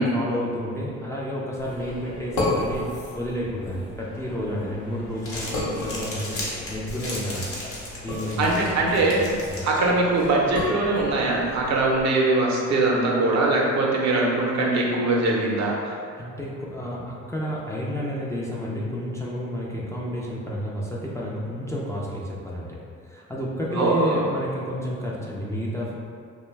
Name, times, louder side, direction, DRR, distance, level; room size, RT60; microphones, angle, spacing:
voice 1, 0.0-6.4 6.7-7.6 8.0-8.9 9.1-9.6 16.2-22.8 23.1-26.0, equal, 10° left, -6 dB, 0.3 m, -31 dB
sound 1, 1.6-12.0, left 2 dB, 80° left, 0.8 m, -34 dB
Crumpling crinkling, 5.0-10.3, left 1 dB, 50° left, 0.8 m, -37 dB
voice 2, 8.4-9.3 9.6-16.0 23.7-24.3, right 2 dB, 65° right, -2 dB, 0.6 m, -22 dB
2.4 x 2.2 x 3.1 m, 2.2 s
cardioid pair, 90°, 30 cm